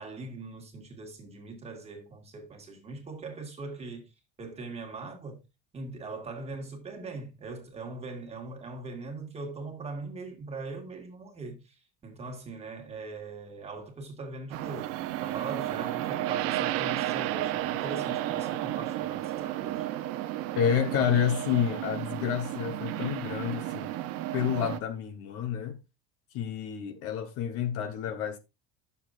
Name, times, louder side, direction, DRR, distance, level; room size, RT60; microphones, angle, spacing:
voice 1, 0.0-5.4 5.7-19.9, right 3 dB, 20° right, 1.9 m, -41 dB
sound 1, 14.5-24.8, right 14 dB, 50° right, 0.8 m, -32 dB
voice 2, 20.6-23.9 24.3-25.8 26.3-28.4, left 9 dB, 50° left, 1.2 m, -29 dB
10.0 x 7.0 x 2.5 m
cardioid pair, 165°, 30 cm